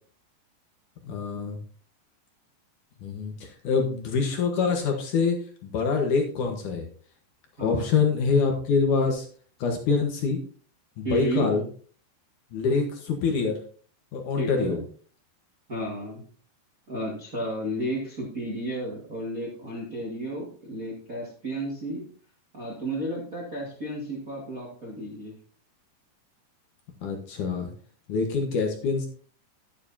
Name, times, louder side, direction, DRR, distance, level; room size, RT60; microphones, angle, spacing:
voice 1, 1.0-1.6 3.0-6.9 7.6-9.3 9.6-10.4 11.0-11.6 12.5-13.6 14.1-14.8 27.0-27.7 28.1-29.1, left 5 dB, 65° left, 3 dB, 2.2 m, -25 dB
voice 2, 7.6-8.0 11.0-11.5 14.4-14.8 15.7-16.2 16.9-22.0 22.5-25.3, right 1 dB, 45° right, -3 dB, 1.0 m, -32 dB
11.0 x 9.8 x 2.7 m, 0.44 s
omnidirectional pair, 5.0 m